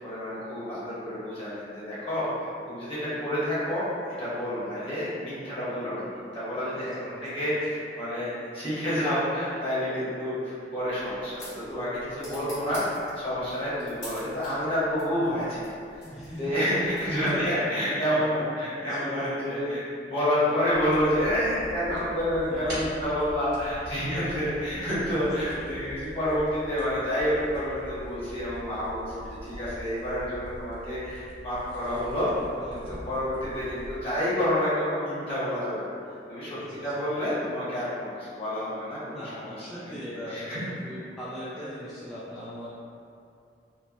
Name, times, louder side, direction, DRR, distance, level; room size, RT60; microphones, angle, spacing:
voice 1, 0.0-15.7 16.4-19.8 20.1-32.3 32.7-35.9 36.3-40.0 40.3-40.6, equal, 30° left, -12 dB, 1.1 m, -29 dB
voice 2, 6.7-7.6 8.9-9.5 10.2-10.3 12.3-12.6 16.0-16.6 17.0-18.5 18.8-19.8 20.4-20.6 22.4-23.1 23.9-24.3 25.2-25.3 25.6-25.7 29.2-29.3 32.4-33.2 36.4-36.9 39.1-42.7, equal, ahead, -12 dB, 0.3 m, -40 dB
sound 1, 10.8-17.7, left 1 dB, 90° left, 1.4 m, -48 dB
sound 2, 20.7-34.0, equal, 70° right, 1.0 m, -43 dB
3.1 x 2.1 x 2.5 m, 2.4 s
head